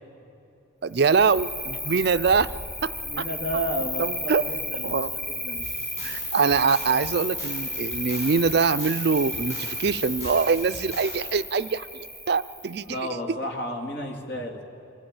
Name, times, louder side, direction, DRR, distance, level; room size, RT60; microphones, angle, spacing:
voice 1, 0.8-2.5 2.8-2.9 3.2-3.3 4.0-4.5 4.8-5.1 6.0-13.1, right 5 dB, 55° right, 13 dB, 0.4 m, -24 dB
Cricket, 0.9-12.9, left 1 dB, 10° left, 4.2 m, -33 dB
voice 2, 3.0-5.7 12.9-14.6, equal, 55° left, 2 dB, 2.3 m, -32 dB
sound 1, 5.6-11.3, equal, 35° left, 7.1 m, -43 dB
24.5 x 15.5 x 8.9 m, 2.7 s
head